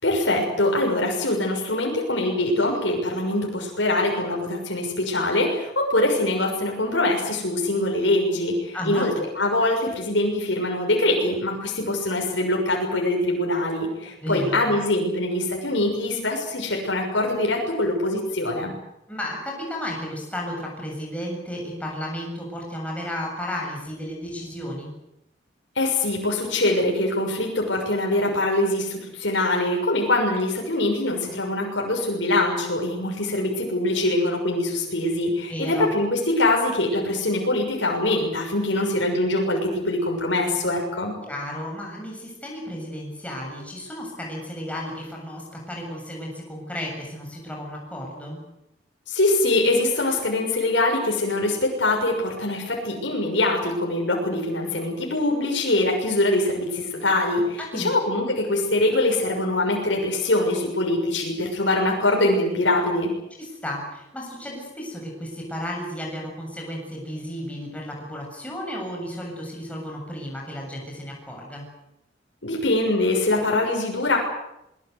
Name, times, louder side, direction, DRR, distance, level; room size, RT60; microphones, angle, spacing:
voice 1, 0.0-18.7 25.7-41.1 49.1-63.1 72.4-74.2, left 2 dB, 75° left, 0 dB, 6.5 m, -23 dB
voice 2, 8.7-9.1 14.2-14.7 19.1-24.9 35.5-35.9 41.2-48.4 57.6-57.9 63.4-71.7, equal, 10° left, -1 dB, 7.4 m, -33 dB
24.0 x 23.0 x 8.2 m, 0.85 s
head